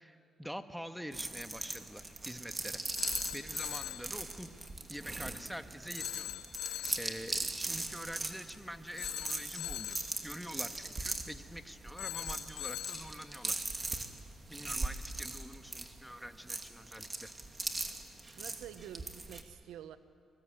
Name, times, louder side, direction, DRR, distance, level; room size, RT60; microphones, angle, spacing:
voice 1, 0.0-4.5 4.9-13.6 14.0-14.1 14.5-17.3, equal, ahead, 8 dB, 1.7 m, -46 dB
sound 1, 1.1-19.4, right 3 dB, 30° right, 2.7 m, -40 dB
Telephone, 3.0-4.1 6.0-7.1 9.0-10.1 12.0-13.1, left 13 dB, 90° left, 0.9 m, -41 dB
voice 2, 18.4-20.0, right 10 dB, 85° right, 12 dB, 1.1 m, -48 dB
24.0 x 20.5 x 9.1 m, 2.3 s
supercardioid pair, 60°, 0 cm